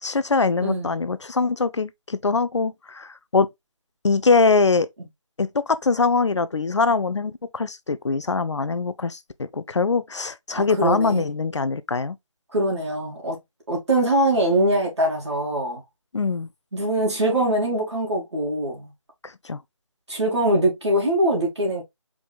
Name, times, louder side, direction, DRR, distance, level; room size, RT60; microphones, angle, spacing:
voice 1, 0.0-3.5 4.0-4.9 5.4-12.2 16.1-16.5 19.2-19.6, left 4 dB, 60° left, 0.4 m, -23 dB
voice 2, 0.6-0.9 10.6-11.2 12.5-13.4 13.7-15.8 16.7-18.9 20.1-21.8, right 1 dB, 55° right, 2.7 m, -23 dB
4.6 x 3.9 x 2.2 m
figure-of-eight pair, 160°, 17 cm